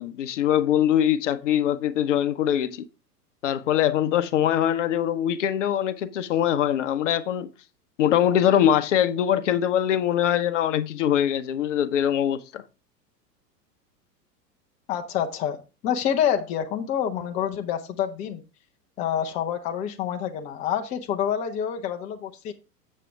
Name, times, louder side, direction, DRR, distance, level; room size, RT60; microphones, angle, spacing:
voice 1, 0.0-2.9 3.4-7.5 8.0-12.6, left 10 dB, 45° left, 0.7 m, -23 dB
voice 2, 14.9-15.6 15.8-18.4 19.0-22.5, left 9 dB, 15° left, 0.5 m, -27 dB
7.5 x 7.3 x 3.4 m
figure-of-eight pair, 100°, 49 cm